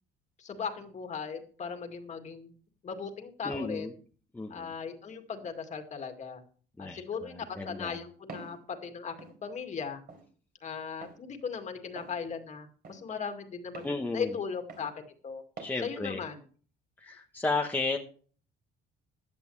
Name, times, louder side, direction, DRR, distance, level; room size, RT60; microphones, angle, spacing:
voice 1, 0.4-2.5 2.8-3.9 4.5-6.4 6.8-10.0 10.6-15.4 15.8-16.4, left 6 dB, 35° left, 5 dB, 2.2 m, -38 dB
voice 2, 3.4-3.9 4.3-4.7 6.8-8.0 13.8-14.4 15.6-16.2 17.0-18.0, left 3 dB, 10° left, 1 dB, 1.1 m, -33 dB
Walk footsteps, 8.3-8.6 9.2-9.4 10.1-10.3 11.0-11.2 12.0-12.2 12.8-13.0 13.7-14.0 14.7-14.9 15.6-15.8, right 5 dB, 50° right, 3.9 m, -45 dB
16.0 x 10.5 x 3.3 m, 0.43 s
cardioid pair, 140°, 20 cm